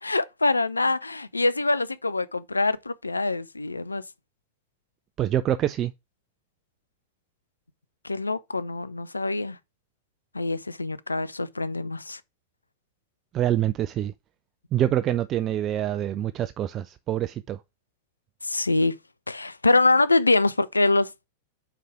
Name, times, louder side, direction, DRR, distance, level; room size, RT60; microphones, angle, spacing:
voice 1, 0.0-4.0 8.0-9.6 10.3-12.2 18.4-18.9 19.3-21.3, left 2 dB, 80° left, 0.4 m, -24 dB
voice 2, 5.2-5.9 13.3-14.1 14.7-17.6, right 11 dB, 30° right, 0.3 m, -25 dB
4.9 x 4.7 x 5.9 m
figure-of-eight pair, 90°, 0 cm